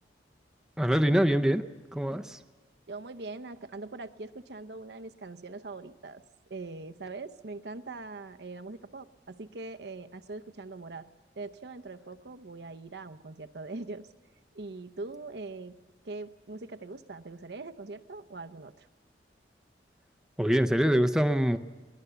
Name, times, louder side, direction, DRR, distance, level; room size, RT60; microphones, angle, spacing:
voice 1, 0.8-1.6 1.9-2.4 20.4-21.6, equal, 5° right, 7 dB, 0.6 m, -24 dB
voice 2, 2.9-11.1 11.4-14.1 14.5-15.8 16.0-18.9, right 3 dB, 70° right, 8 dB, 0.8 m, -42 dB
22.5 x 17.5 x 6.9 m, 1.3 s
head